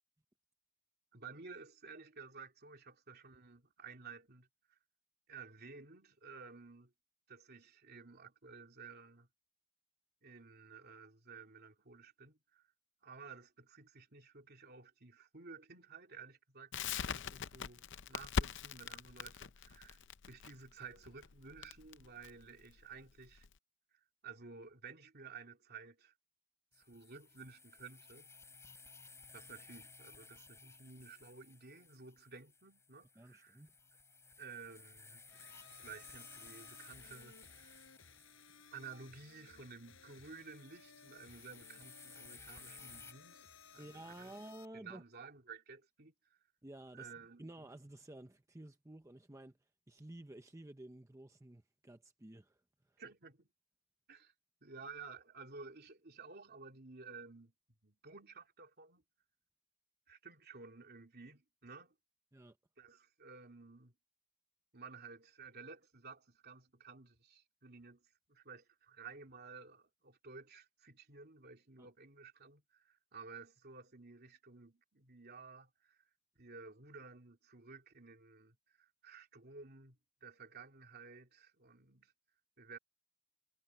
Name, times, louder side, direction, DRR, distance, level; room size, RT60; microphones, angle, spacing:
voice 1, 1.1-4.8 5.3-6.9 7.3-9.3 10.2-12.7 13.0-23.5 24.2-26.1 26.7-28.3 29.3-33.6 34.4-35.2 35.8-37.8 38.7-43.4 43.7-44.3 44.7-46.1 46.9-47.7 53.0-53.5 54.1-54.3 54.6-57.5 57.8-59.0 60.1-61.9 62.8-63.9 64.7-76.0 76.4-82.1 82.6-82.8, right 4 dB, 55° right, 3.0 m, -54 dB
Crackle, 16.7-23.5, left 6 dB, 65° left, 0.6 m, -41 dB
sound 1, 26.7-43.1, left 4 dB, 15° left, 4.2 m, -58 dB
voice 2, 33.2-33.7 43.8-45.0 46.6-47.1 47.4-53.0 62.3-62.6 71.8-71.9, right 1 dB, 15° right, 0.8 m, -53 dB
sound 2, 35.3-44.7, left 5 dB, 80° left, 5.2 m, -60 dB
head